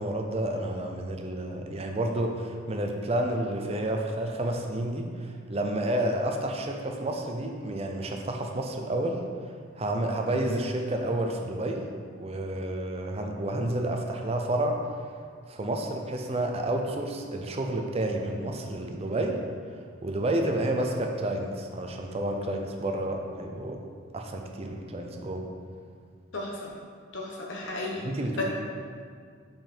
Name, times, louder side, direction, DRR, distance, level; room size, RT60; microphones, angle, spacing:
voice 1, 0.0-9.2 9.8-11.8 12.2-14.9 15.5-19.4 20.0-23.8 24.1-25.5 28.0-28.4, right 1 dB, 30° right, 2 dB, 0.5 m, -30 dB
voice 2, 26.3-26.7 27.1-28.0 28.4-28.5, left 2 dB, 65° left, -2 dB, 1.2 m, -34 dB
5.6 x 5.2 x 4.4 m, 2.1 s
head